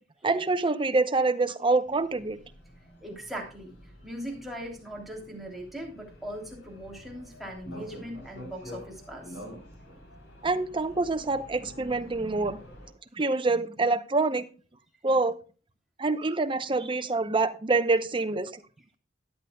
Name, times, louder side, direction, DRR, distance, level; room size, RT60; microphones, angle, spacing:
voice 1, 0.2-2.4 10.4-12.6 13.2-14.5 15.0-15.4 16.0-18.6, right 3 dB, 30° right, 10 dB, 0.7 m, -26 dB
sound 1, 1.8-12.9, equal, 70° left, 3.9 m, -48 dB
voice 2, 3.0-3.7 4.0-9.3, right 1 dB, ahead, -2 dB, 3.1 m, -40 dB
13.0 x 10.0 x 2.3 m, 0.35 s
head